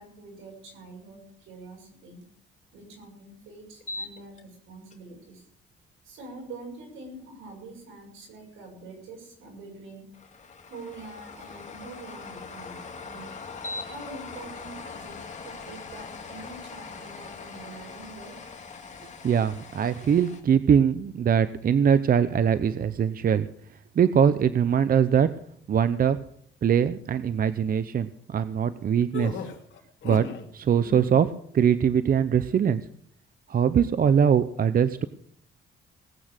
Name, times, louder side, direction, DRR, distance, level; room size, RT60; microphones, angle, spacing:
voice 1, 0.0-2.2 2.7-5.4 6.0-10.1 10.7-13.3 13.9-18.4, right 3 dB, 85° right, 1 dB, 6.9 m, -45 dB
sound 1, 3.8-4.4 4.9-5.0 10.1-20.4, left 4 dB, 35° left, 2.5 m, -41 dB
voice 2, 19.2-23.5 24.0-25.3 25.7-26.2 26.6-29.4 30.0-30.3 30.5-31.3 31.5-32.8 33.5-35.0, right 8 dB, 45° right, 13 dB, 0.7 m, -22 dB
sound 2, 29.1-30.4 30.8-31.3, left 6 dB, 70° left, 2.6 m, -36 dB
19.0 x 8.7 x 6.5 m, 0.63 s
cardioid pair, 90°, 20 cm